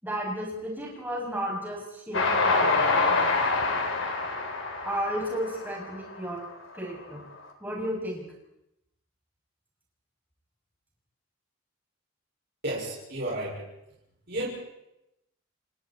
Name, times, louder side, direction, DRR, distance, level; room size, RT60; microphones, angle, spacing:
voice 1, 0.0-3.3 4.8-6.4 6.7-7.2 7.6-8.2, equal, 10° right, -3 dB, 7.8 m, -33 dB
Train, 2.1-6.5, left 3 dB, 75° left, 3.7 m, -26 dB
voice 2, 12.6-13.6 14.3-14.5, right 1 dB, 50° right, -6 dB, 6.1 m, -32 dB
30.0 x 26.0 x 4.5 m, 0.86 s
head